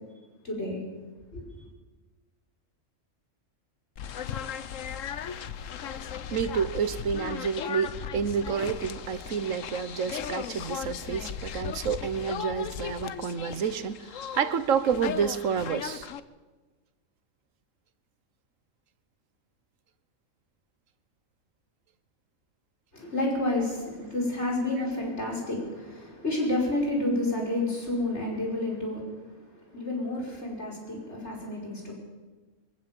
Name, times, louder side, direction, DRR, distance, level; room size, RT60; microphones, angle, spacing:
voice 1, 0.4-0.8 1.3-1.4 22.9-31.9, left 1 dB, 60° left, -1 dB, 5.8 m, -30 dB
sound 1, 4.0-16.2, left 8 dB, 85° left, 1.2 m, -37 dB
voice 2, 6.3-16.1, right 7 dB, 80° right, 13 dB, 1.4 m, -29 dB
23.5 x 15.5 x 7.4 m, 1.3 s
omnidirectional pair, 1.3 m